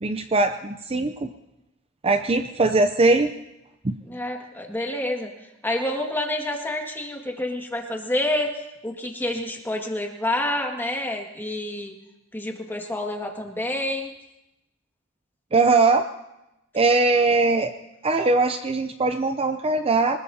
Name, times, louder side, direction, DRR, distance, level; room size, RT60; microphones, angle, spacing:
voice 1, 0.0-1.3 2.0-3.3 3.8-4.0 15.5-16.1 16.7-17.7 18.0-20.2, right 3 dB, 30° right, 8 dB, 0.6 m, -21 dB
voice 2, 4.1-5.3 5.6-11.9 12.3-14.1, left 1 dB, 10° left, 2 dB, 1.9 m, -28 dB
24.5 x 20.0 x 2.8 m, 0.92 s
head